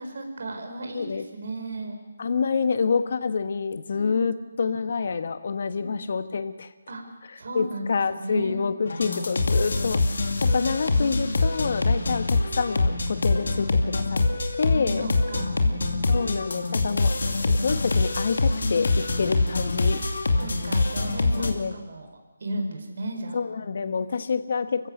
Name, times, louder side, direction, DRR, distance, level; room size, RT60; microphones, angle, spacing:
voice 1, 0.0-2.0 3.9-4.3 5.7-6.1 6.9-7.0 7.4-8.6 10.4-10.9 14.4-14.6 15.0-16.4 19.1-20.0 20.4-22.1 22.4-23.4, right 1 dB, 60° right, 3 dB, 4.6 m, -36 dB
voice 2, 0.9-1.2 2.2-6.7 7.5-14.2 14.6-15.1 16.1-17.1 17.4-20.0 21.4-21.7 23.3-24.9, left 5 dB, 55° left, 11 dB, 1.3 m, -27 dB
sound 1, 8.9-21.5, left 3 dB, 70° left, 2.6 m, -24 dB
27.5 x 15.5 x 6.6 m, 1.1 s
figure-of-eight pair, 160°, 0 cm